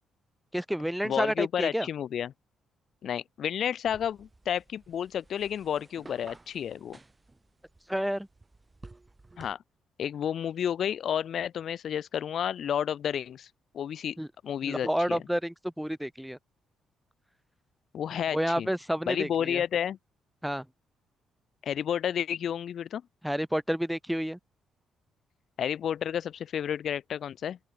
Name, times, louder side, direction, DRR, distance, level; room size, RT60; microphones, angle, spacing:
voice 1, 0.5-1.9 7.9-8.3 14.2-14.3 14.6-16.4 18.3-19.6 20.4-20.6 23.2-24.4, equal, ahead, 0.6 m, -30 dB
voice 2, 1.0-2.3 3.0-7.0 9.4-9.6 10.0-13.5 13.7-14.2 14.4-15.2 17.9-18.7 19.1-20.0 21.6-23.0 25.6-27.6, left 9 dB, 60° left, 0.7 m, -31 dB
sound 1, 3.8-9.5, right 2 dB, 20° right, 4.7 m, -53 dB
open air
cardioid pair, 90°, 0 cm